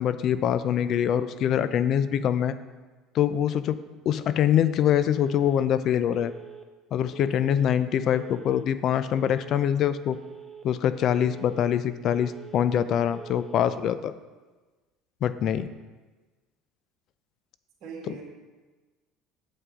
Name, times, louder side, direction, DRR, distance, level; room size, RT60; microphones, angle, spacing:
voice 1, 0.0-2.6 3.1-3.8 4.1-6.3 6.9-10.2 10.6-14.1 15.2-15.7 18.1-18.2, left 9 dB, 55° left, 13 dB, 0.4 m, -24 dB
Telephone, 5.1-5.7 6.1-6.7 7.1-7.7 8.1-8.7 9.1-9.7 10.1-10.7 11.1-11.7 12.1-12.7 13.1-13.7, right 6 dB, 5° right, 1.0 m, -44 dB
voice 2, 7.4-7.7 17.8-18.2, right 5 dB, 55° right, -4 dB, 1.9 m, -42 dB
8.3 x 7.5 x 3.7 m, 1.3 s
supercardioid pair, 90°, 0 cm